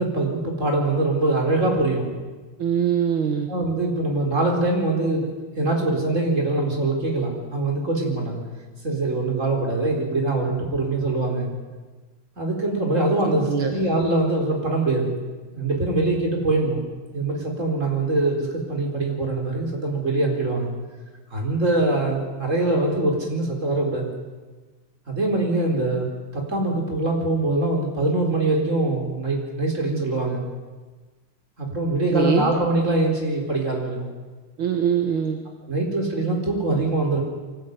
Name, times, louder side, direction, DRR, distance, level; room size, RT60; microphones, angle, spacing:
voice 1, 0.0-2.1 3.5-5.3 5.6-8.4 8.8-11.5 12.4-15.1 15.5-16.8 17.1-20.7 21.3-24.1 25.1-26.1 26.3-30.4 31.6-34.1 35.7-37.2, right 2 dB, 35° right, 1 dB, 4.8 m, -23 dB
voice 2, 2.6-3.5 13.2-13.8 32.1-32.5 34.6-35.4, right 8 dB, 70° right, 5 dB, 2.3 m, -23 dB
24.0 x 16.5 x 9.5 m, 1.3 s
omnidirectional pair, 2.3 m